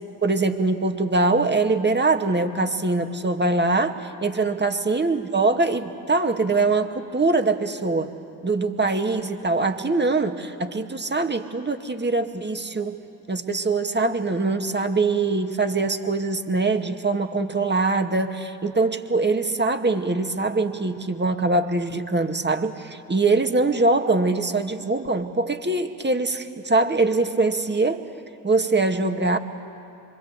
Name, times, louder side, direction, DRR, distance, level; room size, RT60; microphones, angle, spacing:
voice 1, 0.2-8.1 8.4-13.0 13.3-28.1 28.4-29.4, right 3 dB, 20° right, 6 dB, 2.2 m, -23 dB
26.5 x 25.0 x 8.5 m, 2.7 s
hypercardioid pair, 40°, 48 cm